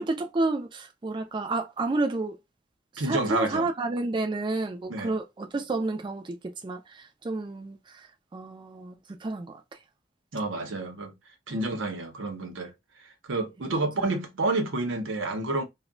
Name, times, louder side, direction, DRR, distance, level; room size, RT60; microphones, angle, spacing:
voice 1, 0.0-2.4 2.9-8.1 8.3-9.6 13.6-14.1, right 2 dB, 25° right, 0.3 m, -31 dB
voice 2, 3.0-3.7 4.9-5.1 10.3-11.1 11.5-12.7 13.3-15.6, right 2 dB, 85° right, 0.7 m, -29 dB
2.2 x 2.1 x 3.7 m
head